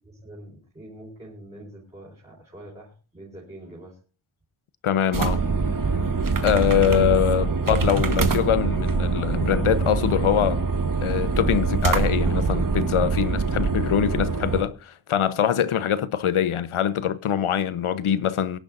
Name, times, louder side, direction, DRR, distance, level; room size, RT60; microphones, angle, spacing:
voice 1, 0.0-4.0, right 1 dB, 15° right, 4.6 m, -44 dB
voice 2, 4.8-5.4 6.4-10.6 11.0-18.6, left 9 dB, 90° left, 1.0 m, -23 dB
sound 1, 5.1-14.6, right 4 dB, 40° right, 1.3 m, -24 dB
23.5 x 10.5 x 2.6 m
wide cardioid pair, 180°, 49 cm